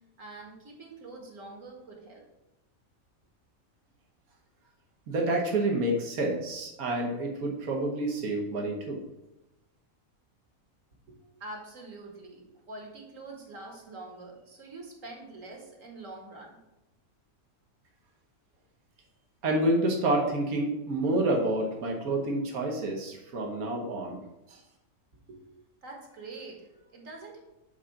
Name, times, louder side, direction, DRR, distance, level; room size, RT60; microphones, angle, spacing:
voice 1, 0.2-2.2 11.1-16.6 25.3-25.4 25.8-27.4, right 2 dB, 65° right, 0 dB, 1.9 m, -45 dB
voice 2, 5.1-9.0 19.4-24.2 24.5-24.6, right 1 dB, 85° right, 1 dB, 1.6 m, -28 dB
7.0 x 3.8 x 5.8 m, 0.95 s
omnidirectional pair, 1.5 m